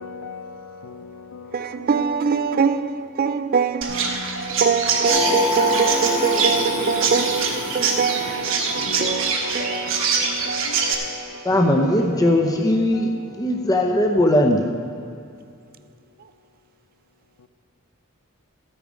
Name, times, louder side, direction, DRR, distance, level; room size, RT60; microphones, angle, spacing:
voice 1, 0.0-1.7 4.1-4.6 5.3-5.5 8.3-12.2 12.7-13.7 17.4-17.5, left 5 dB, 85° left, 0.6 m, -37 dB
voice 2, 1.5-12.3, right 6 dB, 40° right, 0.4 m, -25 dB
Chirp tweet, 3.8-10.9, right 5 dB, 60° right, 1.3 m, -24 dB
Singing, 5.1-9.8, left 2 dB, 35° left, 1.5 m, -26 dB
voice 3, 11.4-14.7, left 1 dB, 15° left, 0.7 m, -19 dB
14.0 x 8.7 x 5.0 m
head